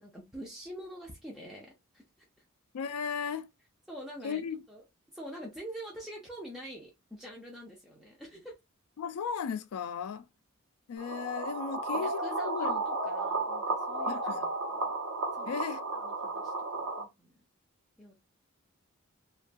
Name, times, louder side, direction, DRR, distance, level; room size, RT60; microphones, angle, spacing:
voice 1, 0.0-2.0 3.9-4.8 5.1-8.5 11.9-14.9 15.3-15.6 15.9-17.4 18.0-18.1, right 1 dB, ahead, 0.4 m, -46 dB
voice 2, 2.7-3.5 4.2-4.6 9.0-10.3 10.9-12.8 14.1-14.5 15.5-15.8, left 6 dB, 85° left, 0.4 m, -36 dB
sound 1, 11.0-17.0, right 2 dB, 80° right, 0.9 m, -33 dB
2.2 x 2.2 x 2.5 m
head